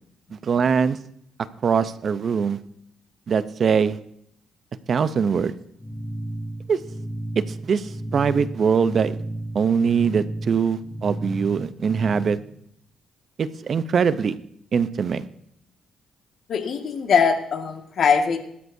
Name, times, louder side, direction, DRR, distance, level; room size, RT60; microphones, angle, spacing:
voice 1, 0.3-1.0 1.6-2.6 3.3-4.0 4.9-5.5 6.7-6.8 7.6-9.1 9.5-12.4 13.4-14.3 14.7-15.2, right 6 dB, 50° right, 13 dB, 0.7 m, -22 dB
sound 1, 5.8-12.3, right 1 dB, 5° left, 3.6 m, -33 dB
voice 2, 16.5-18.5, left 6 dB, 60° left, 4 dB, 1.9 m, -21 dB
20.0 x 13.0 x 2.7 m, 0.71 s
cardioid pair, 90°, 0 cm